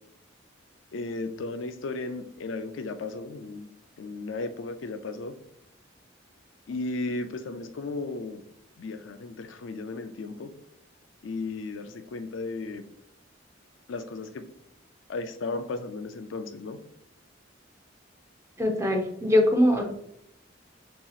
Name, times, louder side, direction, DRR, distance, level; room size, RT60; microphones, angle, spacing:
voice 1, 0.9-5.3 6.7-8.4 8.8-10.5 11.2-12.8 13.9-14.4 15.1-16.8, left 3 dB, 70° left, 8 dB, 0.4 m, -35 dB
voice 2, 18.6-19.8, left 1 dB, 15° right, 2 dB, 0.6 m, -22 dB
6.8 x 2.9 x 2.4 m, 0.75 s
head